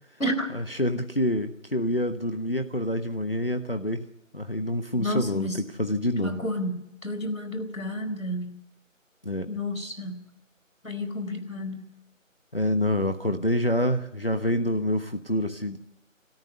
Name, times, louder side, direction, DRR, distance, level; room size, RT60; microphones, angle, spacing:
voice 1, 0.5-4.0 4.3-6.4 9.2-9.5 12.5-15.8, left 1 dB, 45° left, 7 dB, 1.2 m, -27 dB
voice 2, 5.0-5.6 6.2-8.6 9.5-10.2 10.8-11.8, left 1 dB, 85° left, 9 dB, 4.5 m, -31 dB
29.0 x 13.5 x 9.8 m, 0.84 s
figure-of-eight pair, 180°, 40 cm